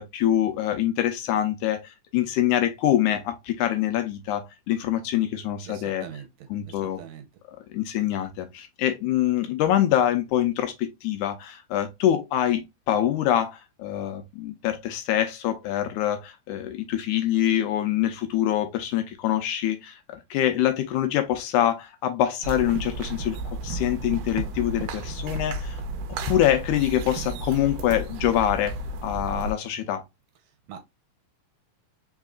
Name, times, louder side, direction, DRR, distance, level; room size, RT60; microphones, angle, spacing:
voice 1, 0.0-6.1 6.5-7.0 7.5-25.8 26.3-30.0, left 11 dB, 75° left, 2.0 m, -25 dB
voice 2, 5.7-6.3 6.6-7.3 30.7-30.8, right 9 dB, 70° right, 1.8 m, -41 dB
sound 1, 22.4-29.5, right 2 dB, 90° right, 2.2 m, -33 dB
5.1 x 3.7 x 2.4 m
omnidirectional pair, 3.8 m